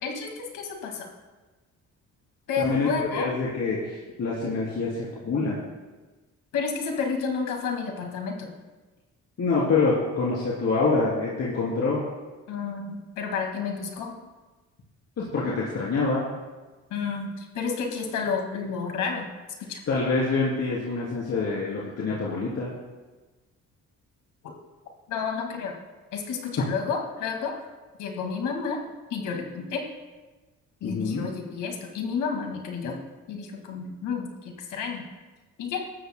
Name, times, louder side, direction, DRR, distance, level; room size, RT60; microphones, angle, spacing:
voice 1, 0.0-1.1 2.5-3.3 6.5-8.5 12.5-14.1 16.9-19.3 19.7-19.8 25.1-25.8 26.1-27.5 28.0-28.8 29.1-29.8 30.8-33.0 33.3-35.0 35.6-35.8, left 5 dB, 85° left, 2 dB, 2.0 m, -30 dB
voice 2, 2.6-5.6 9.4-12.0 15.2-16.2 19.9-22.7 30.8-31.3, left 3 dB, 55° left, -7 dB, 3.2 m, -26 dB
19.0 x 13.0 x 2.2 m, 1.2 s
cardioid pair, 90°, 30 cm